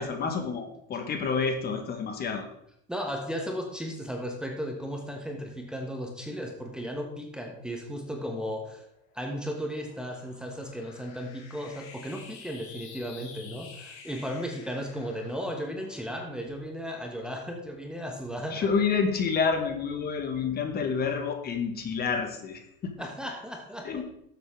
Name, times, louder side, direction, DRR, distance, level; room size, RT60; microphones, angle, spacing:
voice 1, 0.0-2.5 18.5-23.1 23.8-24.0, left 5 dB, 30° left, 6 dB, 1.6 m, -29 dB
voice 2, 2.9-8.9 9.1-18.7 23.0-24.0, equal, 5° right, 1 dB, 1.3 m, -35 dB
sound 1, 8.7-17.4, left 5 dB, 65° left, 2.5 m, -51 dB
12.5 x 7.9 x 3.7 m, 0.73 s
supercardioid pair, 135°, 30 cm